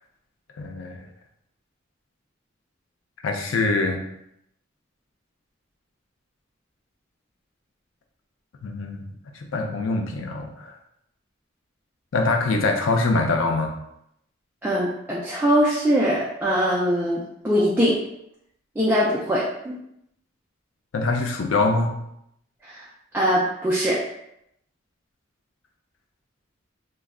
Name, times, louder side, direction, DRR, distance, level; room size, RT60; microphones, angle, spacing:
voice 1, 0.6-1.0 3.2-4.0 8.6-9.1 9.3-10.7 12.1-13.7 20.9-22.0, left 3 dB, 80° left, 3 dB, 0.4 m, -24 dB
voice 2, 14.6-18.0 18.8-19.7 22.6-22.9 23.1-24.0, equal, 10° right, -6 dB, 0.3 m, -22 dB
2.2 x 2.0 x 3.5 m, 0.78 s
head